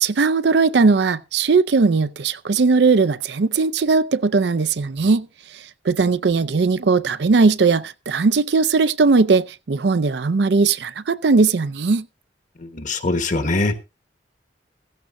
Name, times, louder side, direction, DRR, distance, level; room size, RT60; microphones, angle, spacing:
voice 1, 0.0-5.3 5.8-12.1, right 4 dB, 70° right, 0.5 m, -18 dB
voice 2, 12.7-13.8, left 2 dB, 45° left, 1.3 m, -22 dB
16.0 x 14.0 x 2.6 m
head